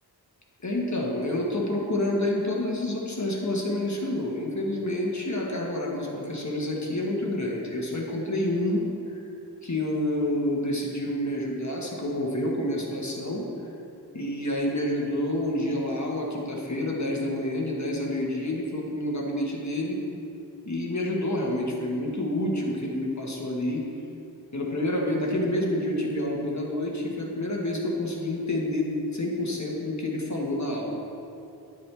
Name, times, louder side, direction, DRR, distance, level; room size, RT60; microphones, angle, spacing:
voice 1, 0.6-8.8 9.1-9.2 9.6-13.5 14.1-20.0 20.6-23.8 24.5-31.0, left 1 dB, 40° left, -2 dB, 1.5 m, -28 dB
10.0 x 7.2 x 3.5 m, 2.8 s
wide cardioid pair, 70°, 42 cm